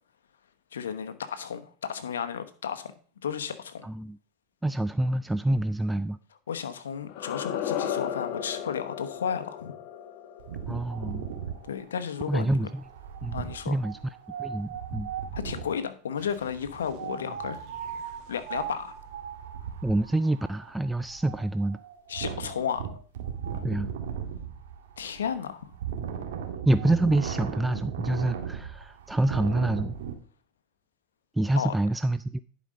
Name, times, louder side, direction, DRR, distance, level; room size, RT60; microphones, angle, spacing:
voice 1, 0.7-2.9 3.2-3.8 6.5-9.7 11.6-12.7 13.3-13.8 15.3-17.6 18.3-18.9 22.1-22.8 25.0-25.7 31.6-31.7, left 7 dB, 90° left, 10 dB, 1.0 m, -33 dB
voice 2, 3.8-4.2 4.6-6.2 10.7-11.3 12.3-12.7 13.2-13.4 13.7-14.0 14.4-15.1 19.8-21.8 23.6-23.9 26.7-29.9 31.4-32.4, right 1 dB, 5° right, 13 dB, 0.3 m, -26 dB
sound 1, 7.0-12.0, left 9 dB, 60° left, 1.2 m, -35 dB
Wind, 10.4-15.8 16.9-30.1, right 8 dB, 80° right, 1.8 m, -37 dB
sound 2, 16.2-19.9, right 7 dB, 55° right, 2.1 m, -52 dB
10.5 x 5.1 x 5.3 m, 0.42 s
hypercardioid pair, 105°, 0 cm